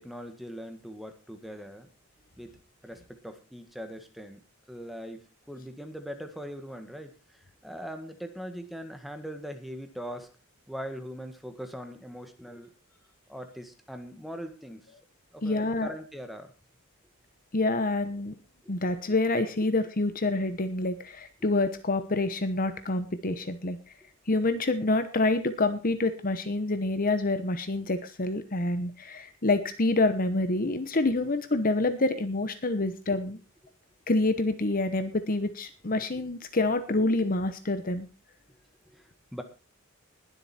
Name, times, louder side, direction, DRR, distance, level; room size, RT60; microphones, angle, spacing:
voice 1, 0.0-1.9 2.4-2.6 2.8-4.4 4.7-10.3 10.7-12.7 13.3-14.9 15.3-16.5 18.6-18.7 37.0-37.1 38.8-39.4, equal, ahead, 7 dB, 1.7 m, -41 dB
voice 2, 15.4-15.9 17.5-18.3 18.7-23.8 24.3-33.4 34.1-38.1, left 2 dB, 40° left, 11 dB, 1.0 m, -27 dB
20.5 x 7.9 x 4.3 m, 0.30 s
head